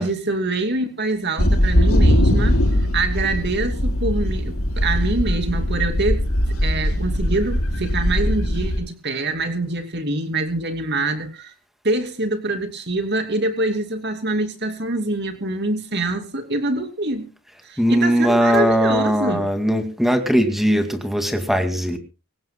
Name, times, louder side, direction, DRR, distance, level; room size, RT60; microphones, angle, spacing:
voice 1, 0.0-2.6 2.9-6.2 6.6-11.5 11.8-17.3 17.6-19.5, right 2 dB, 50° right, 6 dB, 2.8 m, -25 dB
sound 1, 1.4-8.8, equal, 85° left, 7.5 m, -20 dB
voice 2, 17.8-22.0, equal, ahead, 6 dB, 2.1 m, -19 dB
25.0 x 16.0 x 2.2 m, 0.33 s
head